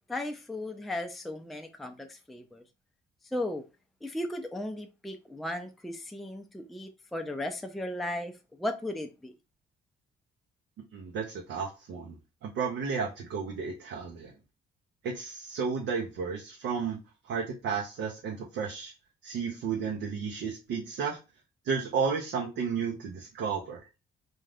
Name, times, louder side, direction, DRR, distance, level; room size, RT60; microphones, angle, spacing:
voice 1, 0.1-2.6 3.3-3.6 4.0-9.3, left 1 dB, ahead, 0.4 m, -36 dB
voice 2, 10.9-12.2 12.4-14.3 15.0-17.0 17.3-18.9 19.2-21.2 21.6-23.8, right 5 dB, 75° right, 0.6 m, -32 dB
2.5 x 2.3 x 3.3 m
cardioid pair, 90°, 20 cm